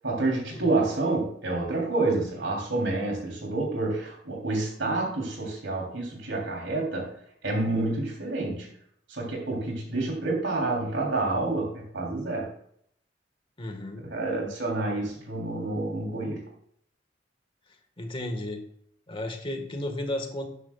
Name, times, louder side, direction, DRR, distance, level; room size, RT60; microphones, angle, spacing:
voice 1, 0.0-7.1 7.4-8.7 9.1-12.5 14.0-16.4, right 2 dB, 80° right, -1 dB, 3.4 m, -28 dB
voice 2, 13.6-14.0 18.0-18.6 19.1-20.5, left 1 dB, 30° left, 4 dB, 1.6 m, -33 dB
13.0 x 9.5 x 2.4 m, 0.68 s
head